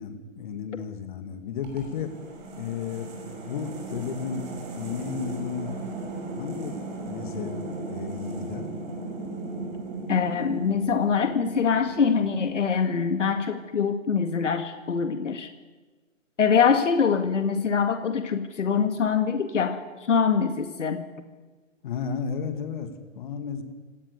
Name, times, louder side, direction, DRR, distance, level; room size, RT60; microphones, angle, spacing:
voice 1, 0.0-2.1 2.6-3.1 3.4-4.5 4.7-5.8 6.4-6.8 7.0-7.6 7.9-8.7 21.8-22.9 23.2-23.6, left 6 dB, 40° left, 7 dB, 2.6 m, -33 dB
sound 1, 1.6-12.7, right 2 dB, 30° right, 6.2 m, -37 dB
voice 2, 10.1-15.5 16.4-19.8 20.1-21.0, left 6 dB, 65° left, 7 dB, 2.0 m, -24 dB
26.5 x 17.5 x 7.1 m, 1.3 s
hypercardioid pair, 145°, 39 cm